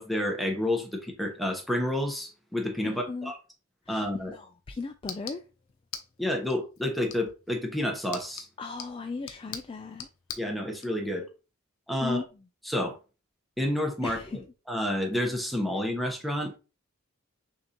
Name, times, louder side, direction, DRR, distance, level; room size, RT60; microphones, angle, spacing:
voice 1, 0.0-3.4 3.9-4.3 6.2-8.5 10.4-11.3 11.9-12.2 12.6-13.0 13.6-16.6, left 1 dB, ahead, 0.9 m, -30 dB
voice 2, 2.8-3.3 3.9-4.1 4.3-5.4 8.6-10.1 12.0-12.3 14.0-14.4, left 4 dB, 25° left, 0.3 m, -36 dB
sound 1, 4.3-10.9, left 8 dB, 80° left, 0.8 m, -45 dB
6.4 x 2.6 x 2.9 m
head